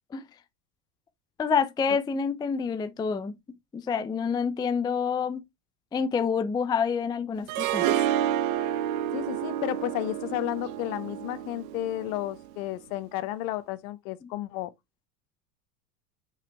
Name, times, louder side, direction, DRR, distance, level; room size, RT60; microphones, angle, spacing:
voice 1, 1.4-3.3 3.7-5.4 5.9-7.9, left 6 dB, 10° left, 0.4 m, -27 dB
Harp, 7.5-12.6, right 11 dB, 60° right, 1.0 m, -29 dB
voice 2, 9.1-14.7, left 14 dB, 55° left, 1.1 m, -32 dB
5.7 x 5.2 x 3.4 m
hypercardioid pair, 105°, 49 cm